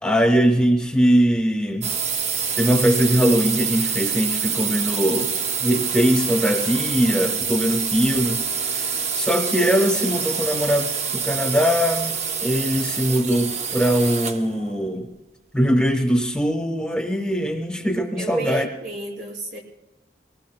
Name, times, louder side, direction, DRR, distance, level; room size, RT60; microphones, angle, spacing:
voice 1, 0.0-1.9 2.6-5.3 5.6-8.4 9.1-15.1 15.5-18.7, equal, 5° left, 3 dB, 1.1 m, -21 dB
sound 1, 1.8-14.5, right 6 dB, 35° right, 0.8 m, -26 dB
voice 2, 18.1-19.6, right 1 dB, 80° right, -1 dB, 5.6 m, -32 dB
23.5 x 19.5 x 2.2 m, 1.1 s
head